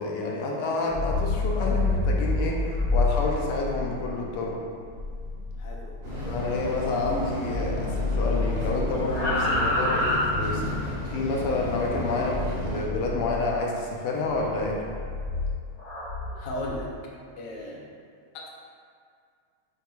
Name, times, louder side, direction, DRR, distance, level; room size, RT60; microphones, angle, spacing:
voice 1, 0.0-4.6 6.2-14.8, left 3 dB, 85° left, -1 dB, 1.6 m, -29 dB
sound 1, 0.8-7.2 7.5-10.9 12.3-13.5 14.2-16.8, left 2 dB, 35° left, 1.5 m, -29 dB
voice 2, 5.6-6.0 16.3-16.9 17.4-17.9 18.3-18.5, left 1 dB, 70° left, -3 dB, 1.2 m, -36 dB
sound 2, 6.0-12.8, left 1 dB, 60° right, 2.4 m, -33 dB
7.8 x 2.9 x 2.3 m, 2.2 s
omnidirectional pair, 2.4 m